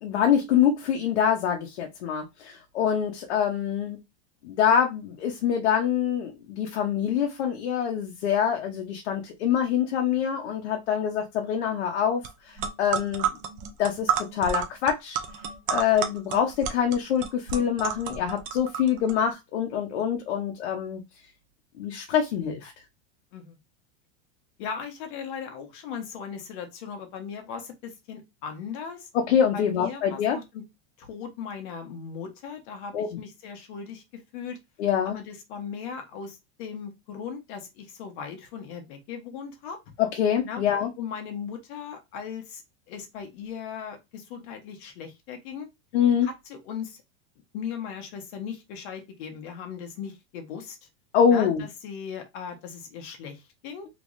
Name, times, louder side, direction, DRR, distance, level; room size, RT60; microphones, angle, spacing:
voice 1, 0.0-4.0 4.4-13.3 13.8-15.2 15.7-21.0 21.8-22.7 29.1-30.4 32.9-33.1 34.8-35.2 40.0-40.9 45.9-46.3 51.1-51.6, left 8 dB, 80° left, 2 dB, 0.9 m, -25 dB
sound 1, 12.2-12.3 12.6-19.1, right 8 dB, 25° right, 0.4 m, -31 dB
voice 2, 24.6-29.1 29.5-30.6 31.0-34.6 35.0-39.8 40.4-40.6 41.0-42.6 42.9-45.7 46.2-47.0 47.5-50.8 51.3-53.9, left 7 dB, 50° left, 5 dB, 1.1 m, -38 dB
3.3 x 3.1 x 2.6 m, 0.22 s
supercardioid pair, 160°, 33 cm